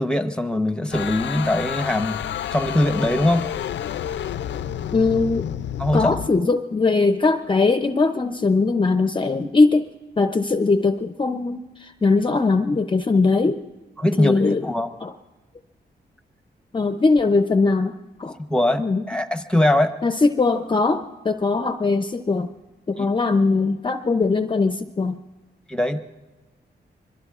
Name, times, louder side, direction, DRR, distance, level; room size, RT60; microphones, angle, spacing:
voice 1, 0.0-2.2 2.5-3.4 5.8-6.1 14.0-14.9 18.5-19.9 23.0-23.1 25.7-26.0, left 1 dB, 5° left, 9 dB, 0.8 m, -21 dB
sound 1, 0.9-6.3, left 10 dB, 90° left, 0.4 m, -30 dB
voice 2, 4.9-5.5 5.9-9.8 10.2-13.6 14.2-14.7 15.0-15.1 16.7-17.9 18.2-18.4 18.8-19.0 20.0-22.5 22.9-25.2, left 3 dB, 25° left, 8 dB, 0.5 m, -20 dB
25.0 x 22.5 x 2.4 m, 1.1 s
wide cardioid pair, 120°, 18 cm